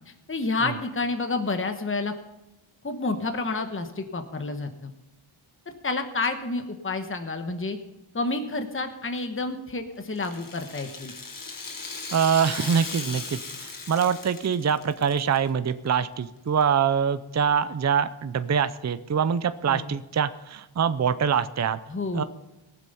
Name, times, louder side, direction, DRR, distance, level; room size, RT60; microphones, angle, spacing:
voice 1, 0.1-2.1 2.8-4.9 5.8-7.8 8.1-11.1 19.7-19.9 21.9-22.2, left 3 dB, 25° left, 6 dB, 1.1 m, -29 dB
Rattle (instrument), 10.1-15.4 15.7-15.8 16.6-16.7, left 4 dB, 40° left, 1.4 m, -37 dB
voice 2, 12.1-21.8 22.1-22.2, right 7 dB, 35° right, 12 dB, 0.6 m, -24 dB
18.5 x 7.6 x 5.5 m, 0.96 s
wide cardioid pair, 90°, 50 cm